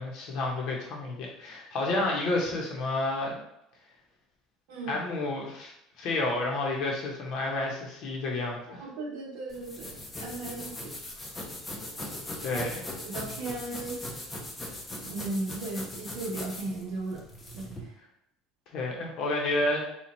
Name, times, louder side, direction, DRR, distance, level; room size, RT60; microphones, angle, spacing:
voice 1, 0.0-3.4 4.9-8.9 12.4-12.7 18.7-19.8, left 2 dB, 45° left, -1 dB, 0.9 m, -30 dB
voice 2, 4.7-5.0 8.8-11.0 12.5-12.6 13.0-14.0 14.9-17.2 17.6-17.9, right 2 dB, 70° right, -2 dB, 0.9 m, -36 dB
sound 1, 9.5-17.8, left 1 dB, 10° left, 0.6 m, -40 dB
4.3 x 2.3 x 4.2 m, 0.80 s
cardioid pair, 180°, 0 cm